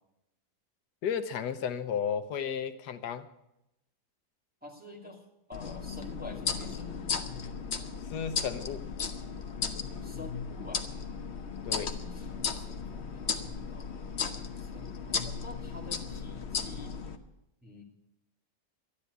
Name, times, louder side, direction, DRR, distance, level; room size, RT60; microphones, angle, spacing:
voice 1, 1.0-3.3 8.1-8.9 11.6-12.0, left 7 dB, 90° left, 10 dB, 1.4 m, -33 dB
voice 2, 4.6-5.2 5.5-7.0 10.0-10.8 11.9-13.9 14.6-16.9 17.6-17.8, left 2 dB, 5° right, -4 dB, 2.6 m, -48 dB
sound 1, 5.5-17.2, left 6 dB, 45° left, 1.1 m, -36 dB
12.5 x 10.5 x 8.2 m, 0.86 s
omnidirectional pair, 1.8 m